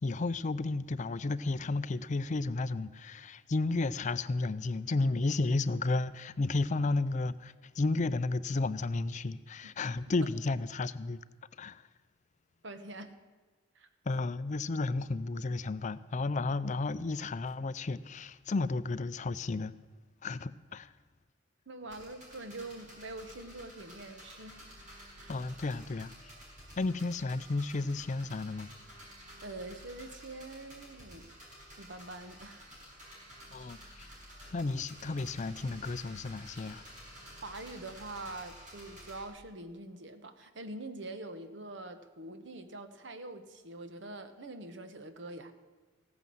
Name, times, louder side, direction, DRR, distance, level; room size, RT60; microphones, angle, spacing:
voice 1, 0.0-11.2 11.6-11.8 14.1-19.7 20.2-20.9 25.3-26.1 26.8-28.7 33.5-34.1 34.5-36.8, left 3 dB, 40° left, 0.4 m, -32 dB
voice 2, 12.6-13.1 13.7-13.9 21.7-24.8 25.2-25.3 29.4-31.3 31.8-32.7 37.4-45.5, right 2 dB, 65° right, 1.2 m, -44 dB
sound 1, 21.9-39.3, equal, 40° right, 5.4 m, -52 dB
15.5 x 9.5 x 7.7 m
head